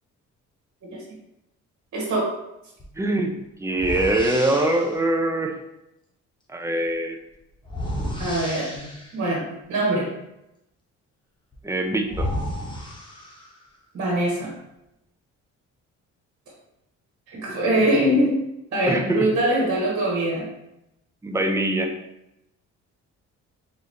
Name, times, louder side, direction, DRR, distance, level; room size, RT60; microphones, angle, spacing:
voice 1, 1.9-2.3 8.2-8.7 9.1-9.4 9.7-10.1 13.9-14.5 17.3-18.3 18.7-20.4, right 1 dB, 55° right, -5 dB, 1.5 m, -22 dB
sound 1, 2.8-3.0 3.7-5.0 7.6-9.2 11.5-11.6 12.1-13.7, equal, 15° left, 0.8 m, -32 dB
voice 2, 3.0-5.6 6.5-7.2 11.6-12.3 17.5-17.8 18.9-19.3 21.2-21.9, right 1 dB, 10° right, 4 dB, 0.5 m, -23 dB
3.9 x 3.1 x 2.7 m, 0.87 s
cardioid pair, 90°, 30 cm